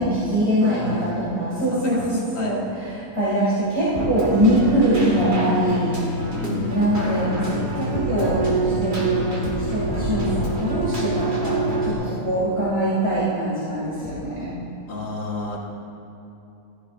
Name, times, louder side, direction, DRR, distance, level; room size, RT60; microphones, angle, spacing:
voice 1, 0.0-5.9 6.7-14.5, right 1 dB, 20° right, -10 dB, 2.2 m, -23 dB
voice 2, 0.6-1.1 1.8-2.6 6.3-7.0 14.9-15.6, left 2 dB, 70° left, -3 dB, 2.0 m, -31 dB
Keyboard (musical), 3.9-11.9, right 2 dB, 50° right, 2.2 m, -25 dB
15.0 x 13.5 x 2.5 m, 2.9 s
omnidirectional pair, 1.5 m